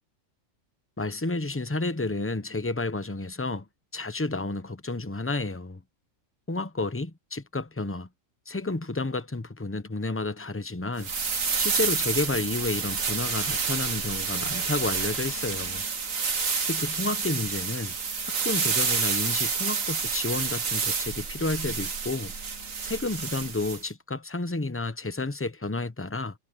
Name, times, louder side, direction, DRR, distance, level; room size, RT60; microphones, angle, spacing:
voice 1, 1.0-3.7 3.9-5.8 6.5-8.1 8.5-11.1 11.6-15.8 16.7-17.9 18.4-22.3 22.8-26.3, left 2 dB, 10° left, 0.8 m, -31 dB
sound 1, 11.0-23.8, right 5 dB, 85° right, 2.1 m, -29 dB
omnidirectional pair, 1.4 m